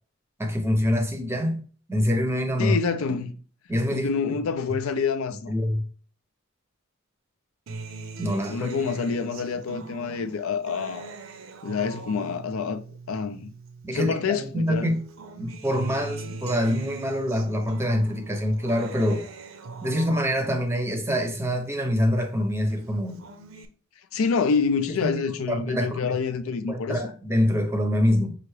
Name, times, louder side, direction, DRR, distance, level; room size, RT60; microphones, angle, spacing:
voice 1, 0.4-1.6 1.9-2.8 3.7-4.1 5.5-5.9 8.2-8.7 13.8-15.1 15.4-19.3 19.8-23.2 25.0-26.2 26.7-28.4, equal, 10° right, 0.6 m, -25 dB
voice 2, 2.6-3.4 3.9-5.5 8.5-11.1 11.6-12.8 13.1-13.5 13.9-14.9 24.1-27.0, left 5 dB, 90° left, 0.5 m, -27 dB
Acoustic guitar, 7.7-14.3 14.7-22.3 22.7-23.6, right 4 dB, 70° right, 0.6 m, -41 dB
5.6 x 2.5 x 3.2 m
head